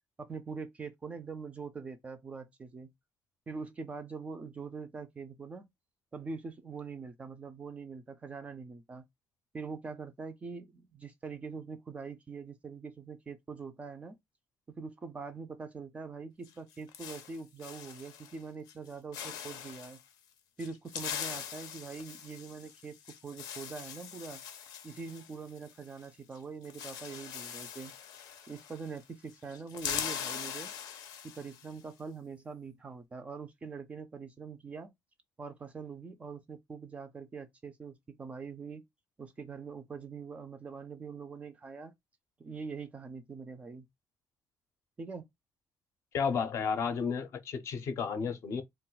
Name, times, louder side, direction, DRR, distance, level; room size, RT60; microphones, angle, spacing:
voice 1, 0.2-2.9 3.5-5.7 6.1-9.1 9.5-14.2 14.7-20.0 20.6-24.4 24.8-27.9 28.5-30.7 31.2-34.9 35.4-38.8 39.2-41.9 42.4-43.9 45.0-45.3, right 5 dB, 20° right, 0.3 m, -43 dB
sound 1, 16.4-18.4 18.7-18.9 19.1-20.0 20.6-26.1 26.3-26.4 26.6-29.0 29.3-31.7, left 8 dB, 85° left, 0.6 m, -42 dB
voice 2, 46.1-48.6, left 6 dB, 45° left, 0.5 m, -32 dB
2.3 x 2.1 x 3.8 m
cardioid pair, 170°, 7 cm